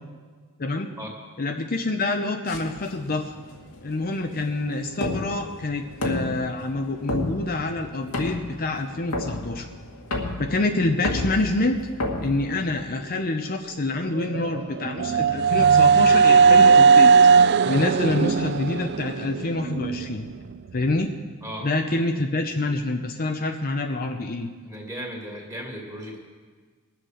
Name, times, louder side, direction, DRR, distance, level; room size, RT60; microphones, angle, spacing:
voice 1, 0.6-0.9 1.4-3.3 3.8-9.7 10.4-11.8 12.2-17.1 17.7-20.3 20.7-21.1 21.6-24.5, left 2 dB, 40° left, 4 dB, 0.7 m, -26 dB
sound 1, 2.5-13.1, left 1 dB, 80° left, 2.0 m, -33 dB
sound 2, 14.2-20.1, right 5 dB, 50° right, 0.3 m, -17 dB
voice 2, 24.6-26.2, equal, 15° right, -1 dB, 2.5 m, -36 dB
20.5 x 7.7 x 6.5 m, 1.6 s
head